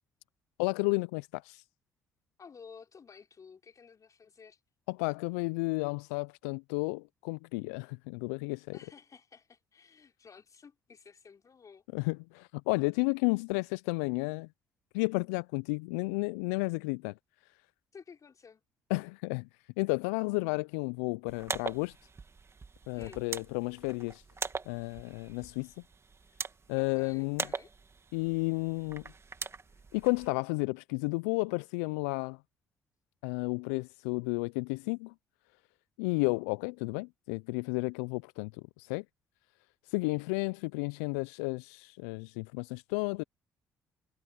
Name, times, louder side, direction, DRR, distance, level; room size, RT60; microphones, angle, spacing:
voice 1, 0.6-1.6 4.9-8.8 11.9-14.5 14.9-17.1 18.9-19.5 19.8-21.9 22.9-24.2 24.7-25.7 26.7-27.4 28.1-29.0 29.9-32.4 33.2-35.1 36.0-39.0 39.9-43.2, left 29 dB, 80° left, 0.4 m, -32 dB
voice 2, 2.4-4.6 8.7-11.8 17.9-18.6 23.0-23.3 26.8-27.7, left 6 dB, 45° left, 4.9 m, -53 dB
sound 1, 21.3-30.3, right 4 dB, 35° right, 2.2 m, -42 dB
hypercardioid pair, 50°, 8 cm